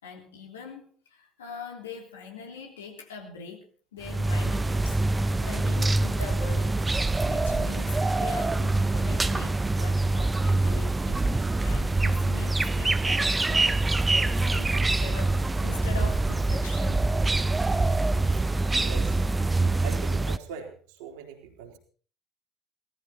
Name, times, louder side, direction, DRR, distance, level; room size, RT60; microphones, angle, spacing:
voice 1, 0.0-5.0 5.4-6.9 7.2-11.2 11.6-13.8 14.1-17.0, left 5 dB, 75° left, 2 dB, 3.4 m, -42 dB
sound 1, 4.0-20.4, right 2 dB, 15° right, 0.8 m, -25 dB
voice 2, 18.8-19.3 19.8-21.8, right 6 dB, 65° right, 3 dB, 3.7 m, -41 dB
18.0 x 15.0 x 4.3 m, 0.42 s
figure-of-eight pair, 60°, 0 cm